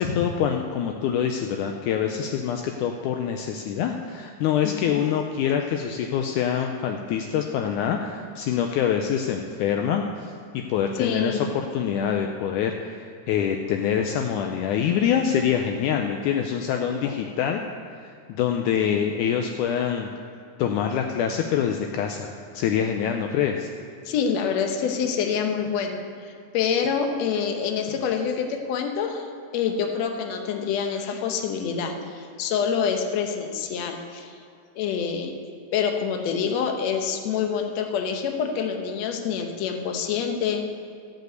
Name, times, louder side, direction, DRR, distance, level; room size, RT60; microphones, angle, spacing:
voice 1, 0.0-17.6 18.0-20.1 20.6-23.7, left 8 dB, 80° left, 3 dB, 1.9 m, -25 dB
voice 2, 4.6-5.0 11.0-11.4 17.0-17.1 24.1-29.3 29.5-34.3 34.8-35.3 35.7-40.7, left 7 dB, 65° left, 4 dB, 1.9 m, -26 dB
15.0 x 5.3 x 8.0 m, 2.3 s
omnidirectional pair, 3.9 m